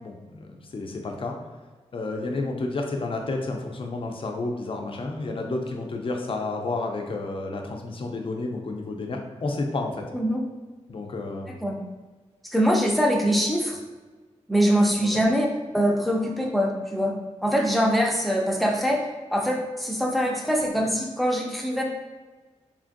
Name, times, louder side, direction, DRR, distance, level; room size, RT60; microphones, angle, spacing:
voice 1, 0.0-1.4 1.9-10.0 10.9-11.6 15.0-15.2, left 3 dB, 50° left, 2 dB, 0.5 m, -31 dB
voice 2, 11.5-11.8 12.4-13.8 14.5-15.5 15.7-21.8, equal, ahead, 0 dB, 0.5 m, -23 dB
3.1 x 2.5 x 2.5 m, 1.3 s
cardioid pair, 60°, 12 cm